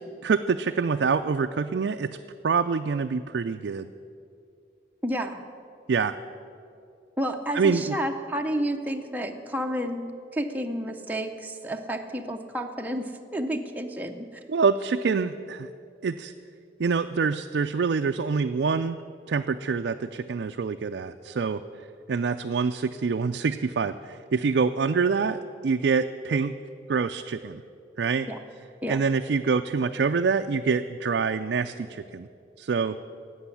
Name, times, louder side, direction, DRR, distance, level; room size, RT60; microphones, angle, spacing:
voice 1, 0.2-2.2 2.4-3.9 5.9-6.1 7.5-8.0 14.5-15.7 16.0-16.3 16.8-19.0 19.3-21.6 22.1-26.6 26.9-27.6 28.0-28.3 28.9-32.3 32.6-33.0, right 5 dB, 75° right, 6 dB, 0.4 m, -26 dB
voice 2, 5.0-5.4 7.2-14.4 28.3-28.4 28.8-29.0, equal, 10° right, 3 dB, 0.7 m, -31 dB
12.0 x 8.0 x 9.8 m, 2.4 s
head